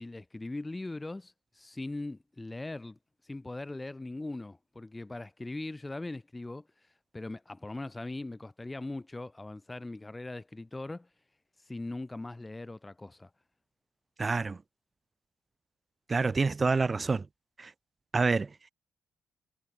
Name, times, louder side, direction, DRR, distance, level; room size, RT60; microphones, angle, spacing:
voice 1, 0.0-3.0 3.2-6.7 7.1-11.1 11.7-13.3, left 2 dB, 15° left, 7.5 m, -40 dB
voice 2, 14.2-14.6 16.1-17.3 17.6-17.7 18.1-18.5, right 4 dB, 30° right, 6.2 m, -27 dB
cardioid pair, 90°, 0 cm